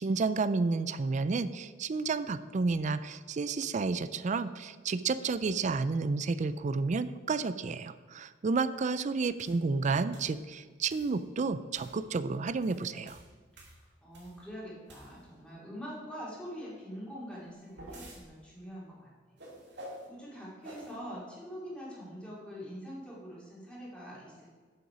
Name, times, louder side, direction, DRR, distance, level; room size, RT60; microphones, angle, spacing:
voice 1, 0.0-13.2, right 4 dB, 40° right, 14 dB, 0.4 m, -31 dB
sound 1, 9.4-9.6 10.1-10.4 10.9-11.2 11.7-12.0 12.5-14.4 14.9-15.4 17.3-18.2 19.4-20.1 20.6-21.0, equal, 65° right, 2.3 m, -49 dB
voice 2, 14.0-19.1 19.7-24.6, equal, 5° left, -6 dB, 2.6 m, -44 dB
7.9 x 6.9 x 4.9 m, 1.5 s
head